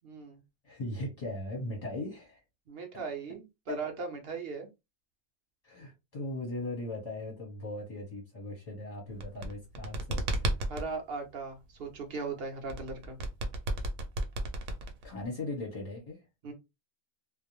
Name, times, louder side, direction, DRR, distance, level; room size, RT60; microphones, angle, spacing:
voice 1, 0.0-0.4 2.7-4.7 10.7-13.2 16.4-16.5, right 4 dB, 55° right, 0.8 m, -38 dB
voice 2, 0.6-2.4 3.7-3.8 5.6-10.5 15.0-16.2, left 2 dB, 35° left, 0.7 m, -38 dB
sound 1, 9.1-10.9 12.7-15.3, right 1 dB, 85° right, 1.1 m, -33 dB
2.5 x 2.0 x 2.9 m
omnidirectional pair, 1.4 m